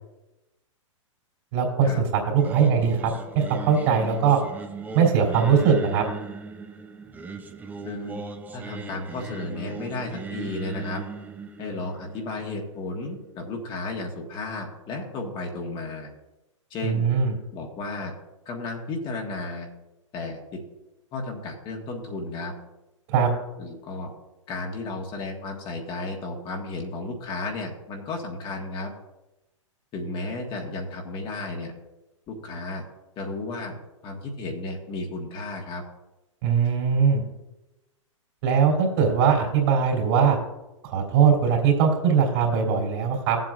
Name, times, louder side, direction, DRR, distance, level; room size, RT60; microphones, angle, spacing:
voice 1, 1.5-4.4 4.9-6.0 16.8-17.3 23.1-23.3 36.4-37.2 38.4-40.4 40.8-43.4, right 6 dB, 50° right, 0 dB, 3.2 m, -21 dB
Singing, 2.4-13.5, right 4 dB, 10° right, 0.6 m, -38 dB
voice 2, 7.8-8.2 8.5-11.0 11.6-16.1 16.7-17.1 17.5-18.1 18.4-19.7 20.1-20.6 21.1-22.5 23.6-24.1 24.5-28.9 29.9-31.7 32.3-32.8 33.2-33.7 34.0-35.8, left 2 dB, 30° left, 1 dB, 1.6 m, -33 dB
15.5 x 7.7 x 2.5 m, 1.0 s
hypercardioid pair, 115°, 17 cm